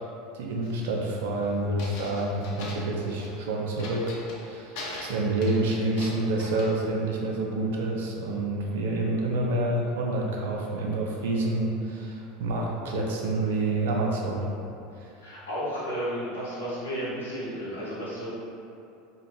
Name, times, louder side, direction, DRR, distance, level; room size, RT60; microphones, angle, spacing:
voice 1, 0.3-4.1 4.4-14.5 15.0-15.1, right 2 dB, 70° right, -1 dB, 0.5 m, -28 dB
sound 1, 0.6-1.0 1.8-3.4 3.8-4.5 4.8-6.7, left 2 dB, 55° left, 0.5 m, -40 dB
voice 2, 15.2-18.3, equal, 80° left, -8 dB, 0.9 m, -33 dB
2.9 x 2.4 x 3.1 m, 2.6 s
figure-of-eight pair, 80°, 0 cm